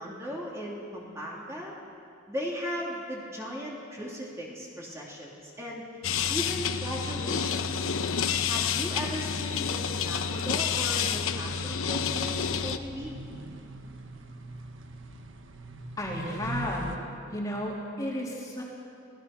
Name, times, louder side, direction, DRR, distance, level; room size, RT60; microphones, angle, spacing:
voice 1, 0.0-1.7 2.3-5.8 6.3-8.0 8.5-13.1, equal, 15° right, -4 dB, 3.1 m, -37 dB
sound 1, 6.0-12.8, left 7 dB, 80° left, 0.9 m, -29 dB
sound 2, 11.4-17.0, right 1 dB, 70° right, 1.4 m, -41 dB
voice 2, 16.0-16.9 17.3-18.6, left 1 dB, 15° left, -3 dB, 3.2 m, -33 dB
26.5 x 18.0 x 6.1 m, 2.4 s
head